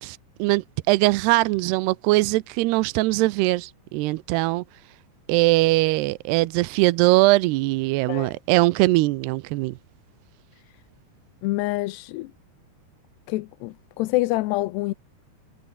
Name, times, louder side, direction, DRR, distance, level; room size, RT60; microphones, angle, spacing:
voice 1, 0.0-4.6 5.3-9.8, right 20 dB, 85° right, 2.7 m, -21 dB
voice 2, 11.4-12.3 13.3-14.9, left 19 dB, 90° left, 2.9 m, -26 dB
omnidirectional pair, 4.7 m